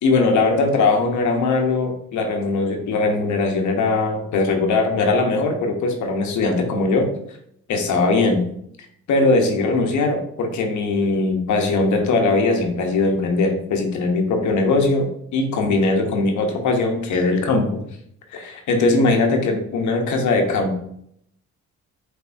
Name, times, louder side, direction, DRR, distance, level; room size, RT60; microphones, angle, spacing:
voice 1, 0.0-7.1 7.7-8.4 9.1-17.8 18.3-20.8, left 3 dB, 75° left, 4 dB, 1.0 m, -20 dB
5.6 x 3.5 x 2.6 m, 0.70 s
cardioid pair, 90°, 30 cm